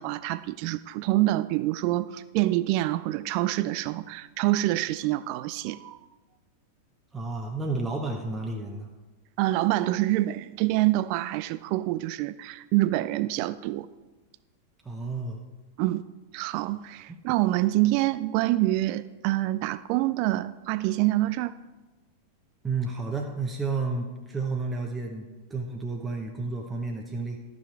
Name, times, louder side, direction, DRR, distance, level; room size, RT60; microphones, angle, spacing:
voice 1, 0.0-6.0 9.4-13.9 15.8-16.0 16.3-21.5, right 16 dB, 45° right, 16 dB, 0.3 m, -26 dB
voice 2, 7.1-8.9 14.8-15.4 22.6-27.4, right 3 dB, 15° right, 1 dB, 0.9 m, -31 dB
12.5 x 6.0 x 4.6 m, 1.2 s
figure-of-eight pair, 90°, 0 cm